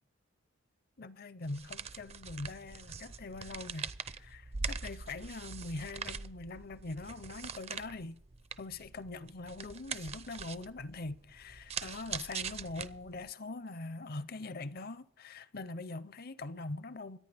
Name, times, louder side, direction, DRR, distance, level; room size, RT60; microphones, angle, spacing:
voice 1, 1.0-8.2 8.6-17.2, left 2 dB, 50° left, 0.6 m, -43 dB
sound 1, 1.4-13.3, right 5 dB, 30° right, 0.5 m, -43 dB
24.5 x 9.2 x 3.4 m
head